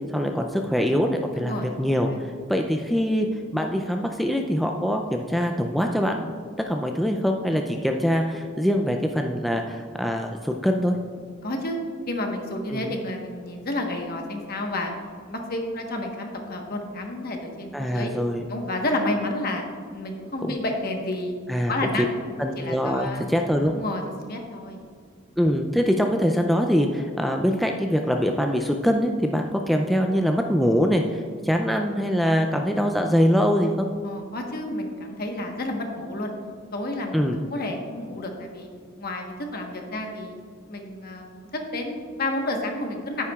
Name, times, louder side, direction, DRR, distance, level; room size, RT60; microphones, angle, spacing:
voice 1, 0.1-1.5 1.8-2.1 2.5-3.3 3.5-6.3 6.7-11.0 12.7-12.9 17.7-18.5 20.4-20.6 21.5-21.7 22.4-23.7 25.4-33.9 37.1-37.4, equal, ahead, 2 dB, 0.3 m, -23 dB
voice 2, 1.4-2.2 11.4-11.8 12.1-14.9 15.3-18.1 18.5-19.6 19.9-21.3 21.7-22.0 22.4-23.3 23.7-24.8 34.0-36.3 36.7-38.7 39.0-40.4 40.7-43.2, left 1 dB, 50° left, 2 dB, 1.1 m, -30 dB
9.8 x 9.5 x 2.3 m, 2.1 s
head